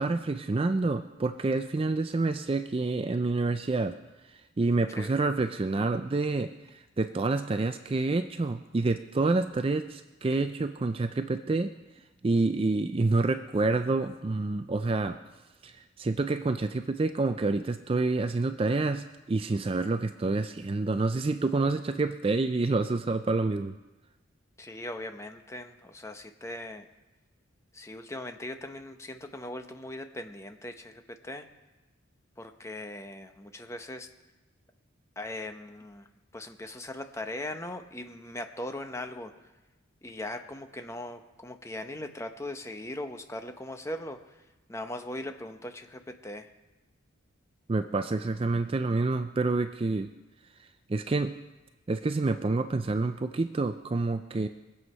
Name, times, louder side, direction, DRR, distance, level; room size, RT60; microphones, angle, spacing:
voice 1, 0.0-4.0 4.2-11.7 12.2-15.2 15.6-23.8 47.7-50.1 50.9-51.3 51.9-54.5, right 3 dB, 25° right, 9 dB, 0.4 m, -28 dB
voice 2, 24.6-26.8 27.7-31.5 32.4-34.1 35.2-36.1 36.3-39.5 40.0-44.4 44.7-46.5, left 1 dB, 15° left, 6 dB, 0.8 m, -39 dB
22.0 x 7.9 x 5.4 m, 1.1 s
head